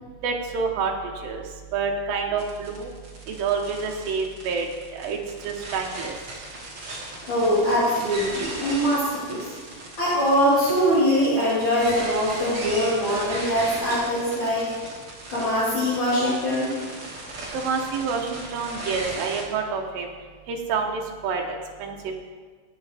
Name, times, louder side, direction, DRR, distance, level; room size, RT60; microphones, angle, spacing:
voice 1, 0.2-0.9 1.2-1.4 1.7-2.9 3.3-4.7 4.9-5.2 5.4-6.1 17.5-20.1 20.5-20.9 21.2-22.1, right 5 dB, 80° right, 1 dB, 2.0 m, -27 dB
sound 1, 2.4-19.4, right 2 dB, 40° right, 1.6 m, -37 dB
voice 2, 7.3-9.5 10.0-14.7 15.3-16.7, equal, 45° left, -11 dB, 5.0 m, -22 dB
15.5 x 9.3 x 3.4 m, 1.5 s
omnidirectional pair, 5.5 m